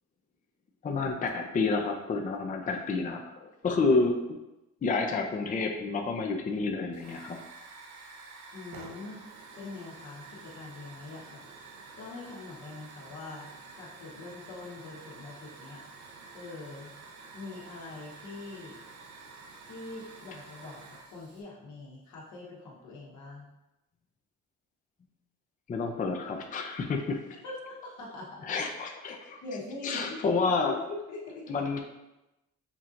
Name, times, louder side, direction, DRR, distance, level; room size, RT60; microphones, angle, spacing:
voice 1, 0.8-3.2 3.6-4.2 4.8-7.4 25.7-27.2 28.4-29.4 29.8-30.7 31.5-31.8, left 3 dB, 25° left, 3 dB, 0.5 m, -29 dB
Hiss / Fire, 6.9-21.4, right 4 dB, 70° right, 0.7 m, -49 dB
voice 2, 8.5-9.2 9.6-11.4 11.9-13.5 13.8-15.8 16.3-16.9 17.3-18.8 19.6-23.5 27.4-28.6 29.4-30.2 30.6-31.2, left 3 dB, 80° left, -4 dB, 1.2 m, -43 dB
5.9 x 2.7 x 2.5 m, 0.97 s
cardioid pair, 90°, 30 cm